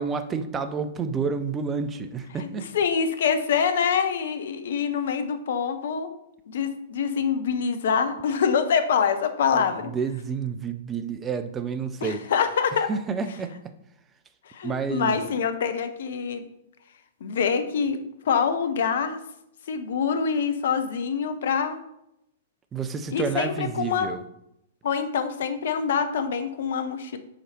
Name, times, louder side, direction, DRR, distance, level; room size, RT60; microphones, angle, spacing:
voice 1, 0.0-2.7 9.5-12.2 12.9-13.5 14.6-15.2 22.7-24.2, right 5 dB, 20° right, 9 dB, 0.5 m, -29 dB
voice 2, 2.4-6.1 6.5-9.9 12.0-12.9 14.5-16.4 17.2-19.2 19.7-21.8 23.1-24.1 24.8-27.2, left 6 dB, 55° left, 8 dB, 0.6 m, -25 dB
5.0 x 4.6 x 4.2 m, 0.79 s
figure-of-eight pair, 105°, 0 cm